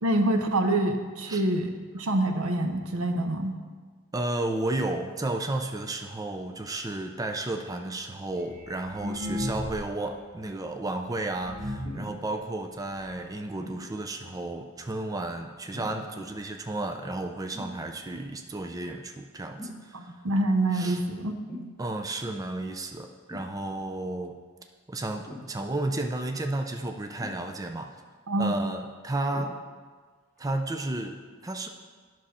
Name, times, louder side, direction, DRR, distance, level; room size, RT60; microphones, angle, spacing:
voice 1, 0.0-3.6 19.9-21.4 28.3-28.6, right 1 dB, 85° right, 6 dB, 0.8 m, -26 dB
voice 2, 4.1-20.2 20.7-21.0 21.8-24.3 24.9-27.9 28.4-29.6 30.4-31.2 31.4-31.7, right 2 dB, 15° right, 5 dB, 0.4 m, -32 dB
sound 1, 8.4-10.0 10.3-10.4 11.0-11.1 11.4-12.1 12.8-12.9 13.2-13.3 13.5-13.8 14.7-14.8 15.0-15.1 15.8-15.9 16.1-16.2, left 1 dB, 55° right, 1.9 m, -35 dB
sound 2, 11.8-12.2 13.6-13.8 15.7-16.1 17.5-17.8 19.6-19.8 21.5-21.7 23.3-23.5 25.2-25.5 27.2-27.8 29.3-29.6 30.4-30.5, left 1 dB, 5° left, 2.1 m, -41 dB
10.0 x 6.2 x 4.3 m, 1.5 s
head